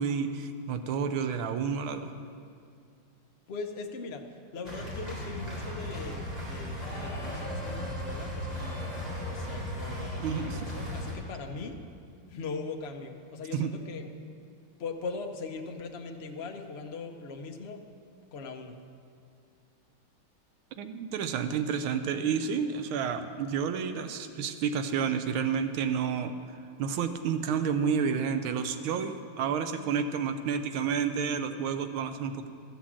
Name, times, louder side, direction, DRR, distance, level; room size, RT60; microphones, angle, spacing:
voice 1, 0.0-2.1 10.2-10.7 13.5-13.7 20.8-26.4 26.8-32.5, right 6 dB, 80° right, 9 dB, 1.5 m, -30 dB
voice 2, 3.5-4.2 4.5-8.9 9.3-11.8 12.3-14.1 14.8-17.8 18.3-18.8, left 4 dB, 55° left, 3 dB, 0.7 m, -40 dB
sound 1, 4.6-11.1, left 1 dB, 20° right, 3.7 m, -36 dB
14.0 x 7.6 x 7.2 m, 2.3 s
omnidirectional pair, 2.3 m